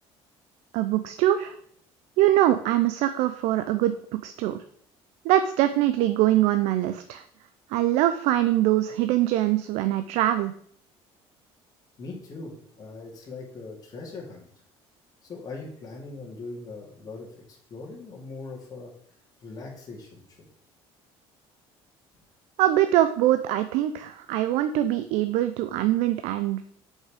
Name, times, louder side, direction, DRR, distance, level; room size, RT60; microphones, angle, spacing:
voice 1, 0.7-1.6 2.2-4.6 5.2-7.2 7.7-10.5 22.6-26.6, right 13 dB, 80° right, 10 dB, 0.5 m, -23 dB
voice 2, 12.0-14.5 15.2-18.9 19.4-20.2, left 3 dB, 35° left, -1 dB, 2.5 m, -40 dB
6.9 x 5.5 x 4.9 m, 0.63 s
cardioid pair, 135°, 11 cm